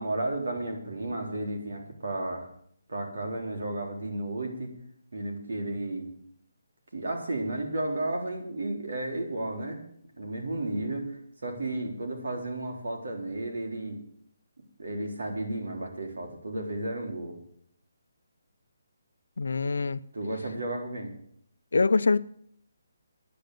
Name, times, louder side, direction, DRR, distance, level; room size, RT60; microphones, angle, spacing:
voice 1, 0.0-2.5 2.9-4.7 5.1-6.1 6.9-9.8 10.2-14.0 14.8-17.3 20.1-21.1, right 2 dB, 85° right, 4.0 m, -33 dB
voice 2, 19.4-20.0 21.7-22.2, left 4 dB, 85° left, 0.7 m, -24 dB
10.0 x 9.3 x 9.4 m
hypercardioid pair, 170°, 0 cm